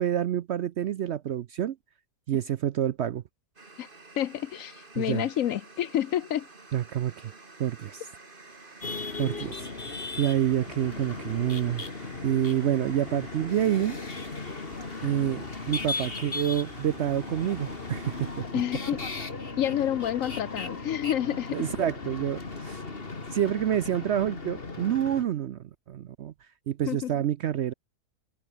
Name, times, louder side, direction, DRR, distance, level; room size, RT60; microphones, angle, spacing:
voice 1, 0.0-1.8 2.3-3.2 5.0-5.2 6.7-7.3 7.6-8.0 9.2-14.0 15.0-18.4 21.5-22.8 23.3-25.6 25.9-26.3 26.7-27.7, right 10 dB, 65° right, 0.7 m, -28 dB
sound 1, 3.6-18.4, right 3 dB, 35° right, 2.6 m, -50 dB
voice 2, 4.2-6.5 18.5-19.2 19.6-21.7 26.9-27.2, left 11 dB, 65° left, 1.0 m, -29 dB
sound 2, 8.8-25.2, left 3 dB, 40° left, 2.5 m, -37 dB
omnidirectional pair, 1.6 m